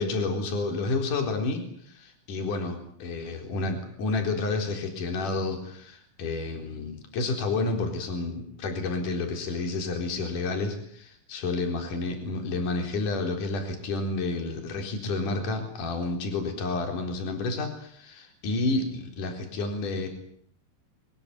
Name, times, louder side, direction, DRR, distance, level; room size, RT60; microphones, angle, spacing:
voice 1, 0.0-20.1, left 3 dB, 45° left, 5 dB, 5.4 m, -30 dB
24.0 x 21.0 x 9.7 m, 0.65 s
omnidirectional pair, 5.3 m